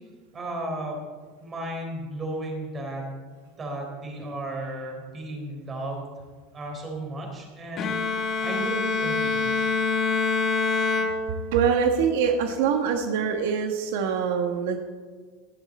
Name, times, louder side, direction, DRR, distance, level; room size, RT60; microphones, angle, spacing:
voice 1, 0.3-1.0 1.4-3.0 3.6-6.1 6.5-7.9 8.4-9.7, right 1 dB, 20° right, 0 dB, 3.9 m, -34 dB
Bowed string instrument, 7.8-11.8, left 4 dB, 30° left, 1.2 m, -26 dB
voice 2, 11.5-14.8, right 6 dB, 75° right, 4 dB, 1.4 m, -24 dB
18.0 x 11.5 x 4.3 m, 1.5 s
supercardioid pair, 150°, 0 cm